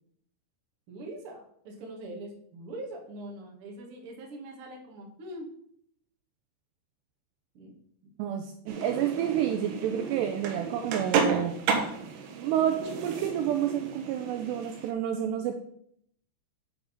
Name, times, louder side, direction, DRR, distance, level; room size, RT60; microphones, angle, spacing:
voice 1, 0.9-5.5 7.5-7.7, right 1 dB, 50° right, 0 dB, 1.7 m, -42 dB
voice 2, 8.2-11.6 12.4-15.5, right 10 dB, 85° right, 5 dB, 2.5 m, -29 dB
sound 1, 8.7-14.9, right 5 dB, 70° right, 2.7 m, -32 dB
9.0 x 7.1 x 5.3 m, 0.68 s
omnidirectional pair, 5.5 m